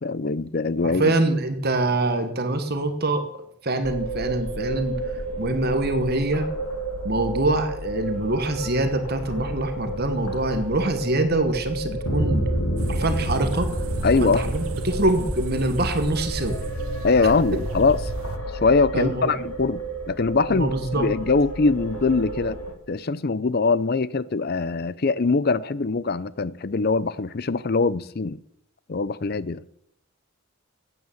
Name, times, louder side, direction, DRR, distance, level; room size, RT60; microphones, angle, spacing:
voice 1, 0.0-1.1 14.0-14.4 17.0-18.0 18.6-22.6 22.9-28.4 28.9-29.6, left 4 dB, 45° left, 0.5 m, -22 dB
voice 2, 0.8-6.5 7.0-12.4 12.9-13.7 14.2-16.6 17.2-17.3 18.9-19.3 20.5-21.1, right 2 dB, 45° right, 1.3 m, -25 dB
sound 1, 3.8-22.7, right 1 dB, 80° left, 2.6 m, -30 dB
sound 2, 12.8-18.4, right 1 dB, 75° right, 1.3 m, -33 dB
15.0 x 9.2 x 7.2 m
head